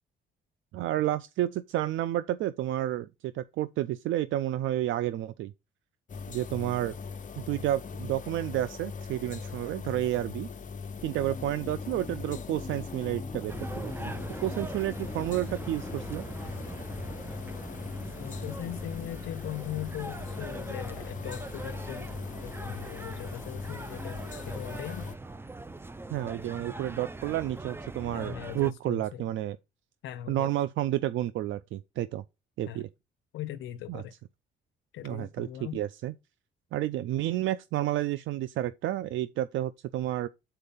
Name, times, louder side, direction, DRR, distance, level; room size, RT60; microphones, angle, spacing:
voice 1, 0.7-5.5 6.3-7.0 7.4-10.5 11.0-14.1 14.4-16.2 26.1-29.6 30.3-32.2 32.6-32.9 33.9-34.0 35.0-35.5 35.7-36.1 36.7-40.3, right 13 dB, 75° right, 0.4 m, -30 dB
sound 1, 6.1-25.2, left 5 dB, 40° left, 0.8 m, -40 dB
sound 2, 10.9-22.4, left 3 dB, 15° left, 1.2 m, -47 dB
sound 3, 13.5-28.7, right 2 dB, 10° right, 0.5 m, -41 dB
voice 2, 18.2-22.1 22.4-24.2 24.5-25.1 28.1-29.3 30.0-30.5 32.7-32.8 33.3-34.1 34.9-35.8, left 12 dB, 80° left, 0.6 m, -39 dB
6.8 x 4.4 x 5.4 m
cardioid pair, 90°, 20 cm